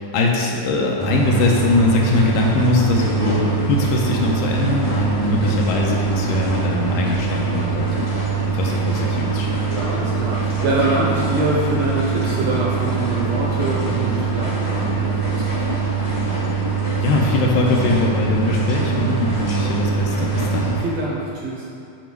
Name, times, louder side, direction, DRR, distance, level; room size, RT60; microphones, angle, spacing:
voice 1, 0.0-9.6 17.0-20.8, left 3 dB, 80° left, -1 dB, 2.2 m, -21 dB
sound 1, 1.0-20.8, right 5 dB, 55° left, 0.4 m, -23 dB
voice 2, 3.1-3.5 5.5-5.7 9.7-15.7 20.8-21.6, right 2 dB, 70° right, -5 dB, 1.8 m, -25 dB
7.5 x 5.0 x 4.5 m, 2.6 s
omnidirectional pair, 3.7 m